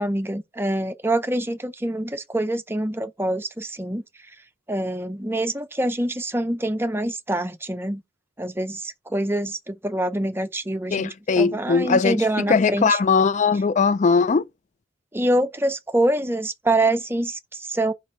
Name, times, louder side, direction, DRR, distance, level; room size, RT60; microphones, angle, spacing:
voice 1, 0.0-4.0 4.7-8.0 8.4-13.0 15.1-17.9, right 1 dB, 10° right, 0.6 m, -25 dB
voice 2, 10.9-12.2 12.5-14.4, left 5 dB, 40° left, 0.3 m, -19 dB
4.7 x 4.0 x 5.5 m
head